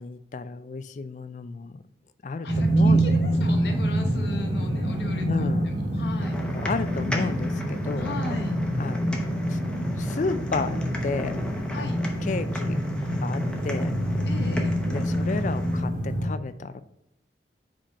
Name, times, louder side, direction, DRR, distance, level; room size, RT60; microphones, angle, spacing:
voice 1, 0.0-1.8 2.2-3.0 5.2-5.7 6.5-8.1 8.8-9.6 10.0-11.4 11.8-11.9 12.2-12.8 13.2-13.9 14.9-16.8, left 4 dB, 45° left, 12 dB, 0.4 m, -32 dB
voice 2, 2.4-6.4 8.0-8.5 11.7-12.0 14.3-14.7, left 1 dB, 70° left, 3 dB, 1.0 m, -38 dB
sound 1, 2.5-16.3, right 1 dB, 45° right, 1.2 m, -26 dB
sound 2, 6.2-15.8, left 1 dB, 5° left, 0.7 m, -38 dB
5.1 x 4.3 x 4.8 m, 0.83 s
head